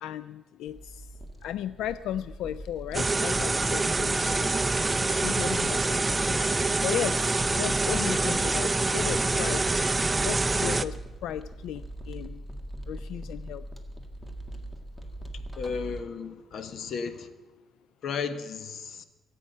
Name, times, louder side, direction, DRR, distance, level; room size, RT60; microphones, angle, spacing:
voice 1, 0.0-1.1 1.4-4.6 5.0-6.4 6.8-9.6 10.2-12.4 12.9-13.6, left 11 dB, 85° left, 0.4 m, -35 dB
sound 1, 0.7-16.0, right 1 dB, 10° left, 1.8 m, -41 dB
sound 2, 2.9-10.9, right 3 dB, 20° right, 0.6 m, -26 dB
voice 2, 15.6-17.3 18.0-19.0, left 5 dB, 65° left, 1.2 m, -34 dB
24.0 x 8.5 x 5.5 m
cardioid pair, 90°, 0 cm